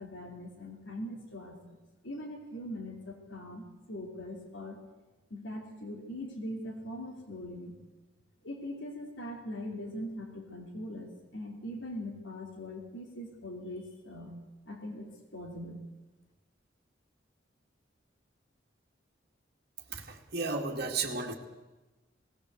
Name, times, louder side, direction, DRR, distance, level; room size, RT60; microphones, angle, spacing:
voice 1, 0.0-1.7 2.0-4.8 5.3-7.8 8.4-14.3 14.7-15.8, left 1 dB, 75° left, 2 dB, 3.1 m, -41 dB
voice 2, 19.9-21.3, right 3 dB, 55° right, 2 dB, 2.2 m, -33 dB
19.5 x 17.0 x 8.1 m, 1.2 s
head